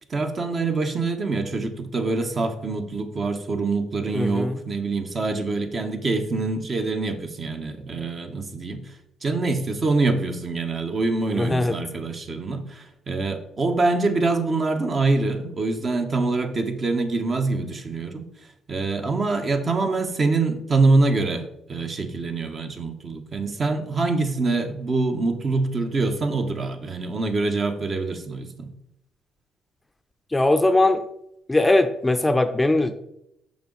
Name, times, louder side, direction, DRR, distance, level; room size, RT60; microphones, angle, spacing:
voice 1, 0.1-9.0 9.2-18.2 18.7-28.7, right 3 dB, 40° right, 6 dB, 1.0 m, -25 dB
voice 2, 4.1-4.6 11.3-11.8 30.3-31.1 31.5-33.0, left 2 dB, 15° left, 9 dB, 0.5 m, -20 dB
6.9 x 5.0 x 3.9 m, 0.80 s
supercardioid pair, 70°, 0 cm